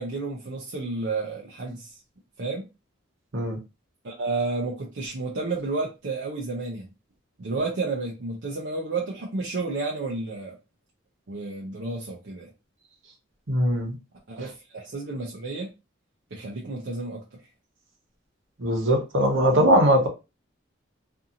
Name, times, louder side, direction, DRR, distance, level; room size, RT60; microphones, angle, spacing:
voice 1, 0.0-1.9 2.4-2.7 4.0-6.9 7.4-10.6 11.3-12.5 14.3-15.7 16.3-17.4, right 3 dB, 65° right, 0.5 m, -31 dB
voice 2, 13.5-14.0 18.6-20.1, equal, 80° right, 0.9 m, -20 dB
2.7 x 2.6 x 2.5 m
head